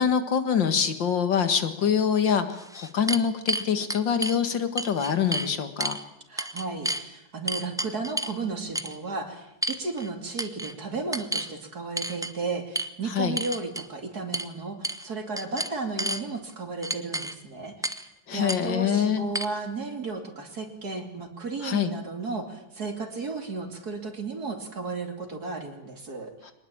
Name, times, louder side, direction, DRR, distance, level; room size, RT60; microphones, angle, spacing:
voice 1, 0.0-6.0 13.1-13.4 18.3-19.2 21.6-21.9 26.4-26.5, left 7 dB, 85° left, 9 dB, 2.5 m, -25 dB
sound 1, 2.5-4.4 4.8-5.5 5.8-6.0 6.4-7.0 7.5-8.4 8.7-9.0 9.6-10.1 10.4-10.7 11.1-11.5 12.0-12.3 12.7-12.9 13.4-13.9 14.3-14.5 14.8-15.1 15.4-16.2 16.8-17.3 17.8-18.1 18.5-18.6 19.3-19.4, right 1 dB, 5° right, 0.6 m, -31 dB
voice 2, 6.3-26.5, right 3 dB, 55° right, 4 dB, 3.3 m, -34 dB
23.5 x 20.0 x 8.8 m, 0.87 s
omnidirectional pair, 2.0 m